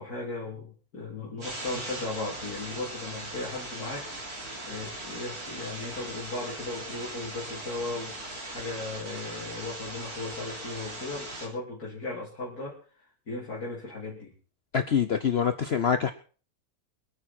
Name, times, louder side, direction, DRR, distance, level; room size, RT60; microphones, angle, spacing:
voice 1, 0.0-4.1 4.6-8.2 8.5-12.8 13.3-14.3, left 3 dB, 75° left, -5 dB, 4.0 m, -36 dB
sound 1, 1.4-11.5, right 1 dB, 70° right, 4.2 m, -39 dB
voice 2, 14.7-16.1, left 7 dB, 50° left, 9 dB, 1.0 m, -25 dB
25.0 x 9.4 x 4.4 m, 0.39 s
omnidirectional pair, 1.6 m